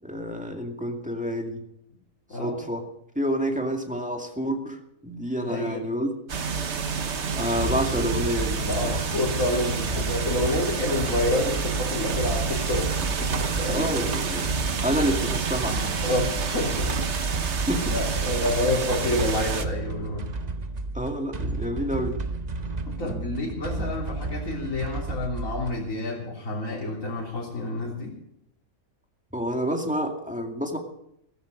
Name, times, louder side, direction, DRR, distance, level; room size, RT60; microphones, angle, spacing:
voice 1, 0.0-1.6 2.3-2.9 3.2-6.1 7.3-9.0 13.7-14.5 14.8-15.9 17.7-17.9 20.9-22.2 29.3-30.8, equal, 5° right, 3 dB, 2.3 m, -28 dB
voice 2, 5.5-5.8 8.6-12.9 13.2-13.9 16.0-16.9 17.9-20.2 23.0-28.1, left 1 dB, 65° left, -3 dB, 3.7 m, -28 dB
sound 1, 6.3-19.7, right 5 dB, 55° right, 1.4 m, -29 dB
sound 2, 7.5-25.9, right 3 dB, 35° right, 0.9 m, -32 dB
15.0 x 14.5 x 5.2 m, 0.75 s
omnidirectional pair, 1.5 m